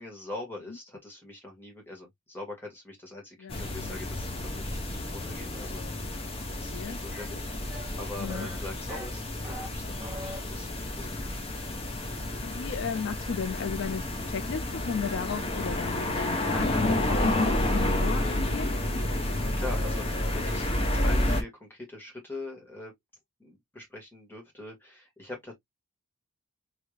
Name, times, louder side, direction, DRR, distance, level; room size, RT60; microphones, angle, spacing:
voice 1, 0.0-4.3 4.6-11.4 19.2-22.9 23.4-25.5, left 2 dB, 10° left, 1.7 m, -43 dB
sound 1, 3.5-21.4, left 1 dB, 25° left, 0.7 m, -30 dB
sound 2, 7.1-7.3 7.7-8.0 8.3-8.6 8.9-9.7 10.0-10.4, right 1 dB, 10° right, 2.1 m, -41 dB
voice 2, 12.4-14.0 14.3-18.7, left 6 dB, 60° left, 0.3 m, -34 dB
3.4 x 3.3 x 2.3 m
head